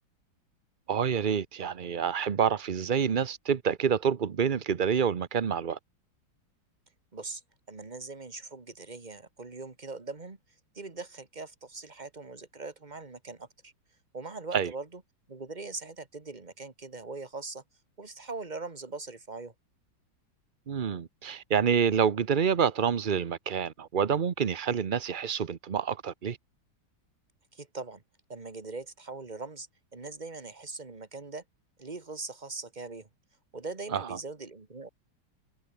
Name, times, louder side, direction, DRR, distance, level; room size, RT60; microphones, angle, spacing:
voice 1, 0.9-5.8 14.5-14.7 20.7-26.4 33.9-34.1, right 7 dB, 60° right, 0.5 m, -27 dB
voice 2, 7.7-10.4 10.7-13.7 14.1-15.0 15.3-17.6 18.0-19.5 27.5-28.0 28.3-31.4 31.8-33.1 33.5-34.9, right 3 dB, 25° right, 1.9 m, -41 dB
omnidirectional pair, 2.1 m